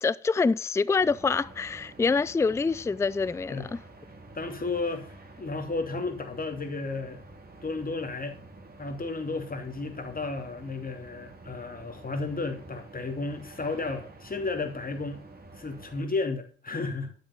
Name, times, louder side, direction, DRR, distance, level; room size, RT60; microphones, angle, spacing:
voice 1, 0.0-3.7, left 4 dB, 10° left, 0.4 m, -26 dB
sound 1, 1.0-16.0, right 2 dB, 30° right, 3.1 m, -49 dB
voice 2, 4.3-5.1 5.4-7.2 7.6-8.4 8.8-15.2 15.6-17.1, left 3 dB, 25° left, 2.9 m, -33 dB
12.0 x 6.2 x 7.6 m
figure-of-eight pair, 40°, 32 cm